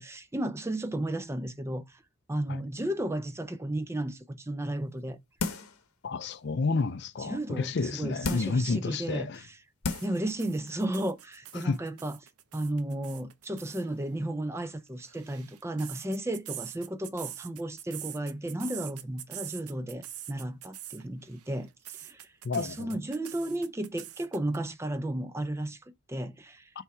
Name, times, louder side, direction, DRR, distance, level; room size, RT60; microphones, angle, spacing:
voice 1, 0.0-2.0 2.3-5.2 7.2-9.6 10.0-12.2 12.5-22.3 22.5-26.7, right 1 dB, 10° right, 0.4 m, -34 dB
sound 1, 5.4-5.8 6.3-6.4 8.2-8.7 9.4-9.5 9.8-10.2 10.6-10.7, left 3 dB, 85° left, 1.0 m, -33 dB
voice 2, 6.0-9.4 11.5-11.8 22.4-23.0, left 4 dB, 50° left, 0.4 m, -30 dB
sound 2, 9.9-13.9 14.9-21.0 21.3-24.6, right 12 dB, 90° right, 0.7 m, -44 dB
5.5 x 3.7 x 4.6 m
head